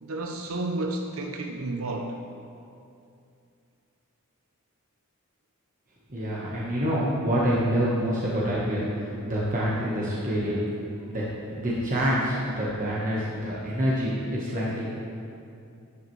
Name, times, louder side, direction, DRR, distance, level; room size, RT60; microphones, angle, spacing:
voice 1, 0.0-2.2, right 2 dB, 70° right, 3 dB, 0.6 m, -31 dB
voice 2, 6.1-10.6 11.1-11.2 11.6-14.9, equal, 35° right, -7 dB, 1.3 m, -26 dB
11.5 x 9.2 x 3.2 m, 2.5 s
head